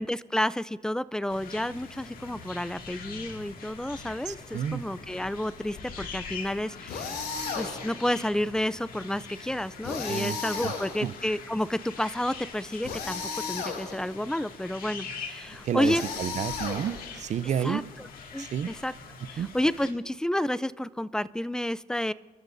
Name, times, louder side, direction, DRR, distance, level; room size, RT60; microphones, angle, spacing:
voice 1, 0.0-7.2 7.5-13.2 13.5-16.0 17.6-18.1 18.3-18.9 19.3-22.1, left 1 dB, 5° left, 18 dB, 0.3 m, -30 dB
sound 1, 1.3-19.9, left 5 dB, 60° left, 2.0 m, -43 dB
voice 2, 4.3-4.8 10.1-10.7 11.0-11.1 15.6-17.8 18.4-18.7 19.4-19.5, right 9 dB, 45° right, 16 dB, 0.5 m, -31 dB
sound 2, 6.9-8.0 9.8-11.3 12.8-14.1 15.8-17.2, left 5 dB, 75° left, 2.9 m, -35 dB
28.0 x 13.0 x 2.6 m, 1.5 s
cardioid pair, 110°, 17 cm